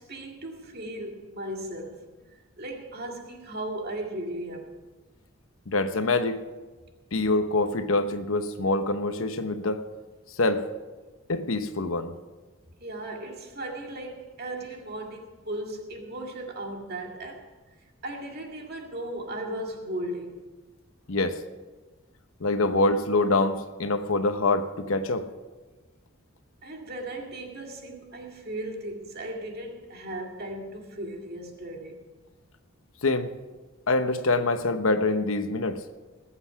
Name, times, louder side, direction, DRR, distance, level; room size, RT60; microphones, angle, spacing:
voice 1, 0.0-2.0 2.6-4.7 12.8-17.4 18.0-20.5 26.6-32.0, right 1 dB, 45° right, 2.1 m, -36 dB
voice 2, 5.7-6.4 7.1-9.8 10.4-10.6 11.3-12.1 21.1-21.4 22.4-25.3 33.0-33.3 33.9-35.8, left 2 dB, 70° left, 0.9 m, -25 dB
20.0 x 8.0 x 5.8 m
head